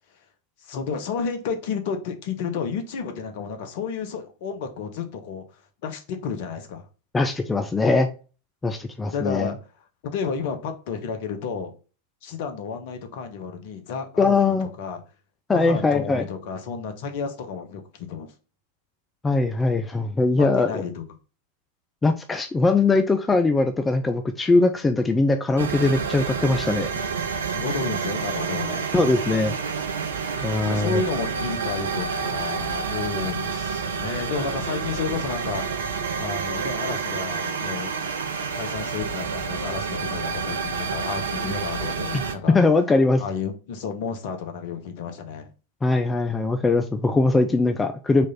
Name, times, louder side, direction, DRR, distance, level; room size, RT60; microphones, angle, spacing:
voice 1, 0.6-5.4 5.8-6.9 9.1-9.6 10.0-11.7 12.2-15.0 15.5-18.3 20.4-21.0 27.5-28.9 30.2-30.4 30.7-35.6 36.2-37.9 38.5-42.6 43.2-45.5, left 5 dB, 50° left, 6 dB, 0.9 m, -31 dB
voice 2, 7.1-8.1 8.6-9.5 14.2-14.7 15.5-16.2 19.2-20.8 22.0-26.9 28.9-29.6 30.4-31.0 42.1-42.2 42.5-43.2 45.8-48.3, left 3 dB, 15° left, 6 dB, 0.4 m, -21 dB
sound 1, 25.6-42.3, right 5 dB, 65° right, 0.6 m, -29 dB
4.2 x 3.1 x 3.7 m, 0.35 s
figure-of-eight pair, 90°, 0 cm